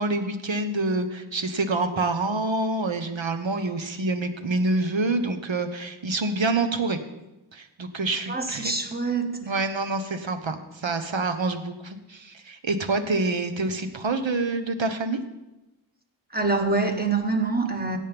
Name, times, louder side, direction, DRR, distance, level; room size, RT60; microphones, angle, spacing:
voice 1, 0.0-7.0 7.5-8.7 9.5-15.2, right 2 dB, 65° right, 7 dB, 1.1 m, -27 dB
voice 2, 8.3-9.6 16.3-18.0, right 3 dB, 20° right, 4 dB, 1.4 m, -25 dB
16.5 x 8.5 x 3.5 m, 0.99 s
wide cardioid pair, 65°, 48 cm